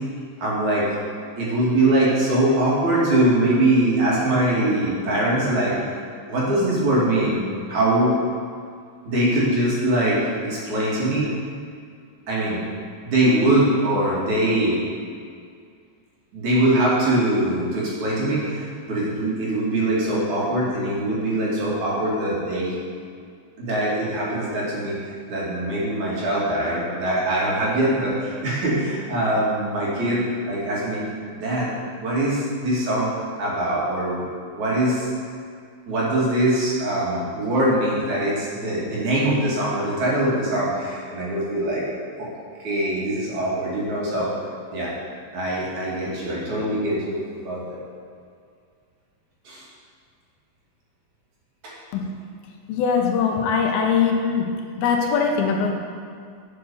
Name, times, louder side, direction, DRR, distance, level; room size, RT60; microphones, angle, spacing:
voice 1, 0.4-0.9 1.4-5.8 6.3-7.4 7.7-8.2 9.1-11.3 12.3-12.6 13.0-14.8 16.3-22.7 23.6-31.0 31.4-31.7 32.0-33.1 33.4-34.2 34.5-35.1 35.9-41.8 42.2-42.3 42.6-44.3 44.7-44.9 45.3-47.8 49.5-49.6 51.6-51.7 55.4-55.5, right 1 dB, 55° right, -6 dB, 3.6 m, -22 dB
voice 2, 52.7-54.5 54.8-55.7, left 6 dB, 90° left, 2 dB, 3.0 m, -21 dB
10.0 x 6.7 x 7.0 m, 2.2 s
omnidirectional pair, 4.2 m